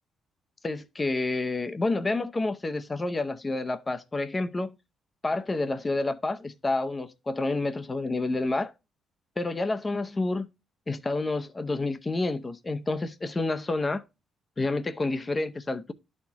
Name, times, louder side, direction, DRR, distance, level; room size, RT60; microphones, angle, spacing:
voice 1, 0.6-4.7 5.2-8.7 9.4-10.5 10.9-14.0 14.6-15.9, left 2 dB, 25° left, 0.6 m, -29 dB
11.5 x 4.2 x 2.8 m
cardioid pair, 90°, 0 cm